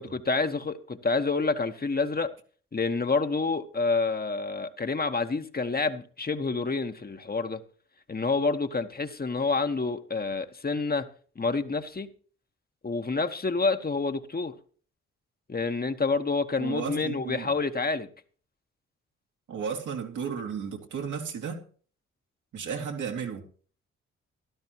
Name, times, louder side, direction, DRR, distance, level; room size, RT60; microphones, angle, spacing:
voice 1, 0.0-2.3 2.7-7.6 8.1-11.1 11.4-12.1 12.8-14.5 15.5-18.1, left 4 dB, 30° left, 1.4 m, -28 dB
voice 2, 16.6-17.5 19.5-21.6 22.5-23.4, right 6 dB, 70° right, 2.7 m, -34 dB
16.0 x 12.5 x 3.1 m
hypercardioid pair, 45°, 31 cm